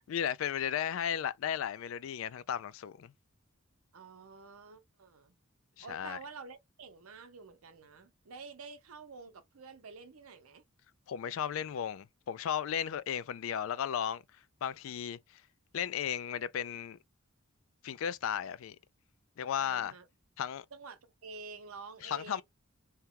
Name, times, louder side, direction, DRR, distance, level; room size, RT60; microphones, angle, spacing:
voice 1, 0.1-3.1 5.8-6.2 11.1-14.2 14.6-15.4 15.7-17.0 17.8-18.8 19.4-19.9 20.4-20.6 22.0-22.4, left 9 dB, 65° left, 0.3 m, -35 dB
voice 2, 3.9-5.4 5.8-10.6 19.6-20.1 20.7-22.4, right 4 dB, 80° right, 0.7 m, -49 dB
2.9 x 2.2 x 3.6 m
head